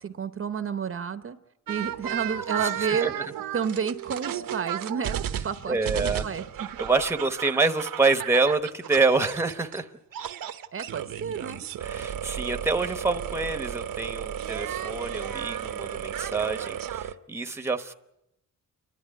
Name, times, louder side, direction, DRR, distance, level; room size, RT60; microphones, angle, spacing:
voice 1, 0.0-1.4 1.7-3.1 3.5-6.7 10.7-11.7, right 6 dB, 40° right, 10 dB, 0.8 m, -31 dB
sound 1, 1.7-9.8 10.1-17.1, right 10 dB, 80° right, 1.0 m, -34 dB
voice 2, 2.6-3.2 5.7-6.2 6.8-9.9 11.8-17.9, right 3 dB, 10° right, 7 dB, 0.9 m, -26 dB
29.5 x 11.5 x 9.4 m, 0.84 s
wide cardioid pair, 160°, 33 cm